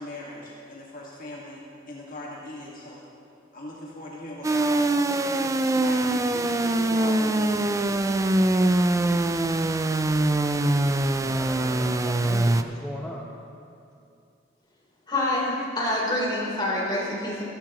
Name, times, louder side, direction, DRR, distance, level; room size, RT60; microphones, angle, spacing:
voice 1, 0.0-3.0 3.5-8.1, left 1 dB, 50° left, -4 dB, 1.7 m, -39 dB
sound 1, 4.4-12.6, right 2 dB, 15° right, 0.4 m, -23 dB
voice 2, 11.2-13.3, equal, 5° left, -3 dB, 0.8 m, -37 dB
voice 3, 15.1-17.4, left 1 dB, 25° left, -6 dB, 3.6 m, -26 dB
14.5 x 14.5 x 3.0 m, 2.6 s
head